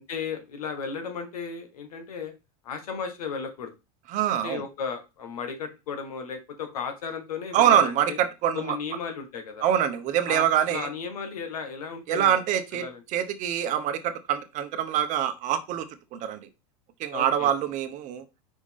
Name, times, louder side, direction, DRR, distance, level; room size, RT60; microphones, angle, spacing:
voice 1, 0.1-2.3 2.6-3.7 4.4-8.2 8.5-9.6 10.3-12.4 12.7-13.0 17.1-17.5, left 6 dB, 85° left, 7 dB, 1.7 m, -35 dB
voice 2, 4.1-4.6 7.5-8.8 9.6-10.9 12.1-12.8 13.1-15.8 16.1-16.5 17.0-18.2, right 10 dB, 40° right, 9 dB, 1.0 m, -24 dB
5.4 x 4.8 x 3.6 m, 0.26 s
supercardioid pair, 125°, 19 cm